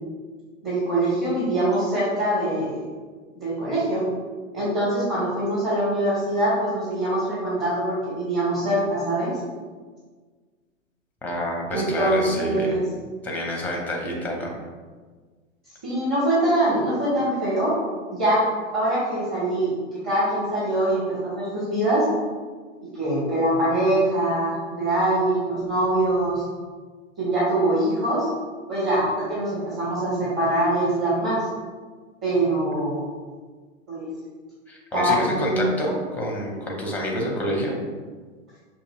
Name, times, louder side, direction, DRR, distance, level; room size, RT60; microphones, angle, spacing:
voice 1, 0.6-2.8 3.4-4.0 4.5-9.3 11.7-12.8 15.8-17.8 18.1-18.5 18.7-19.7 20.0-22.1 22.9-26.4 27.2-28.2 28.7-31.5 32.2-33.0 33.9-34.1 34.9-35.6, right 1 dB, 30° right, -9 dB, 1.5 m, -23 dB
voice 2, 11.2-12.8 13.2-14.5 34.7-37.8, equal, 5° left, -1 dB, 0.5 m, -28 dB
6.1 x 2.7 x 2.3 m, 1.5 s
hypercardioid pair, 110°, 39 cm